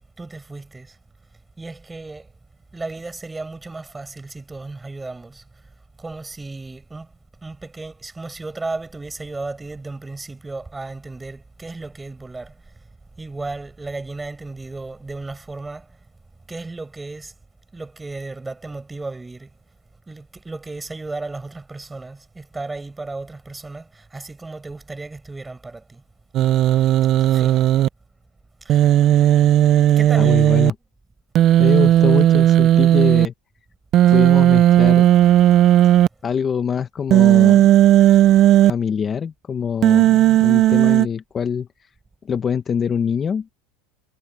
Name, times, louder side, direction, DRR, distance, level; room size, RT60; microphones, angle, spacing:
voice 1, 0.2-1.0 1.6-2.3 2.7-5.4 6.0-7.1 7.4-12.5 13.2-15.9 16.5-17.3 17.7-19.5 20.1-26.0 27.3-27.6 28.6-28.8 30.0-30.6, right 3 dB, 10° right, 5.1 m, -34 dB
Human voice, 26.3-27.9 28.7-30.7 31.3-33.3 33.9-36.1 37.1-38.7 39.8-41.1, right 12 dB, 35° right, 0.3 m, -14 dB
voice 2, 30.1-30.7 31.6-33.3 34.1-35.1 36.2-37.6 38.6-41.9 42.2-43.5, left 7 dB, 20° left, 0.7 m, -24 dB
supercardioid pair, 165°, 0 cm